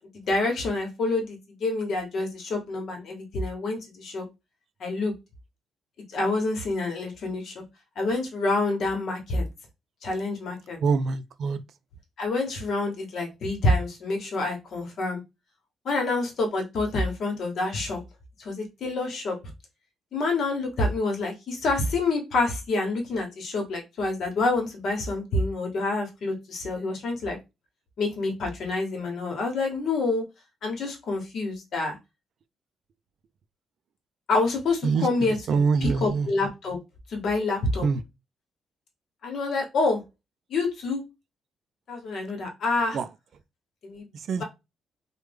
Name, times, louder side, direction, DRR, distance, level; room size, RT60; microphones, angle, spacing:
voice 1, 0.3-4.3 4.8-5.1 6.1-7.6 8.0-9.4 10.0-10.8 12.2-15.2 15.8-18.0 18.4-19.4 20.1-27.4 28.0-30.2 30.6-32.0 34.3-36.8 37.1-37.9 39.2-40.0 40.5-41.0 41.9-43.0 43.8-44.1, left 2 dB, 55° left, 1.1 m, -27 dB
voice 2, 10.8-11.6 34.8-36.3 37.8-38.0 42.9-43.1 44.3-44.4, right 5 dB, 55° right, 0.3 m, -25 dB
3.2 x 2.2 x 3.4 m
cardioid pair, 150°, 0 cm